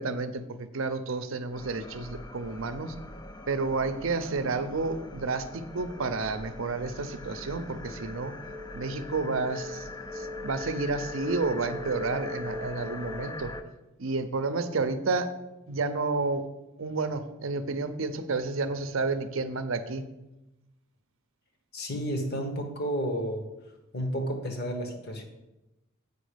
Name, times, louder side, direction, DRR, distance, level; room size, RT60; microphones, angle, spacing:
voice 1, 0.0-2.9 3.5-8.3 8.7-9.9 10.1-13.5 14.0-15.3 15.7-16.5 16.8-20.1, right 3 dB, 65° right, 10 dB, 0.6 m, -30 dB
sound 1, 1.5-13.6, left 2 dB, 15° left, 0.4 m, -40 dB
voice 2, 21.7-23.5 23.9-25.2, equal, 50° left, 4 dB, 1.2 m, -31 dB
8.4 x 5.2 x 5.1 m, 0.98 s
head